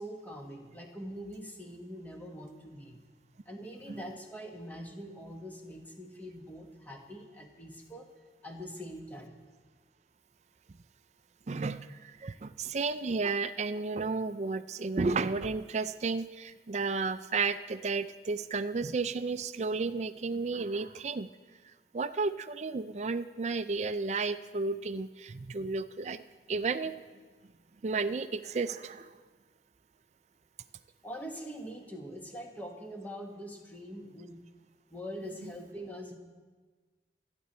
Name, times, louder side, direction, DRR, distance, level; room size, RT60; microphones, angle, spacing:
voice 1, 0.0-3.0 3.4-8.1 8.4-9.3 31.0-34.4 34.9-36.2, equal, 10° left, 2 dB, 1.5 m, -43 dB
voice 2, 11.5-21.3 21.6-26.2 26.5-27.0 27.8-29.2, right 4 dB, 40° right, 12 dB, 0.4 m, -33 dB
27.0 x 10.5 x 4.3 m, 1.4 s
head